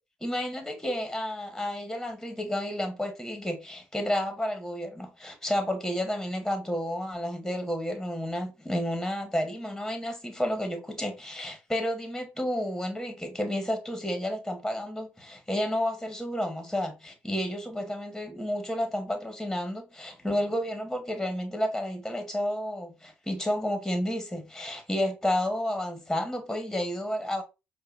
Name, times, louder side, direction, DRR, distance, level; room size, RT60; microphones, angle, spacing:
voice 1, 0.2-27.4, left 1 dB, 5° left, 1.0 m, -31 dB
4.9 x 2.2 x 2.4 m
supercardioid pair, 60°, 5 cm